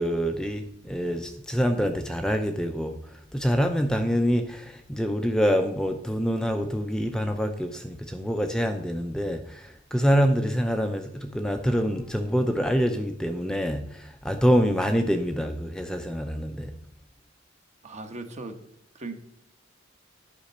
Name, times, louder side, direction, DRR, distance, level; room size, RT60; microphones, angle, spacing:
voice 1, 0.0-3.0 3.3-16.7, equal, 5° left, 5 dB, 0.5 m, -26 dB
voice 2, 17.8-18.6 18.9-19.1, right 2 dB, 35° right, 7 dB, 1.1 m, -37 dB
10.0 x 5.2 x 6.6 m, 0.71 s
head